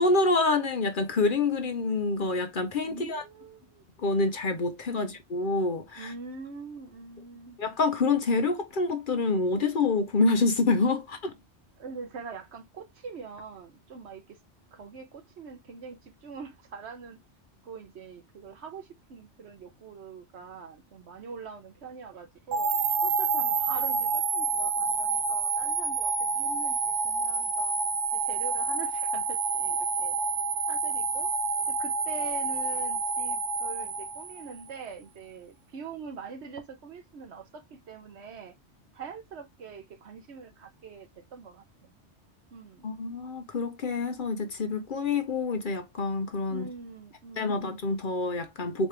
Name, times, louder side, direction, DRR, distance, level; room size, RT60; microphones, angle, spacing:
voice 1, 0.0-3.2 4.0-6.1 7.6-11.3 42.8-46.7 47.4-48.9, left 3 dB, 50° left, 0.8 m, -27 dB
voice 2, 2.9-3.8 5.0-5.2 6.0-7.6 11.8-14.4 14.7-17.2 17.6-22.7 23.0-27.8 28.1-30.2 30.7-31.3 31.7-38.5 38.9-41.9 42.5-42.9 46.5-47.6, right 5 dB, 70° right, 1.2 m, -44 dB
sound 1, 22.5-34.7, right 4 dB, 90° right, 1.0 m, -28 dB
4.1 x 3.2 x 3.3 m
omnidirectional pair, 1.2 m